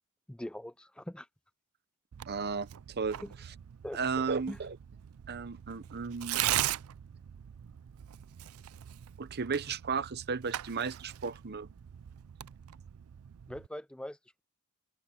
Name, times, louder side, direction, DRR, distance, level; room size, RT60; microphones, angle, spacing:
voice 1, 0.3-1.3 3.2-3.3 3.8-4.6 13.5-14.4, left 1 dB, 5° left, 0.4 m, -42 dB
Tearing, 2.1-13.7, right 13 dB, 70° right, 0.4 m, -39 dB
voice 2, 2.3-3.2 3.9-4.8 5.3-6.4 9.2-11.7, right 5 dB, 50° right, 0.9 m, -34 dB
head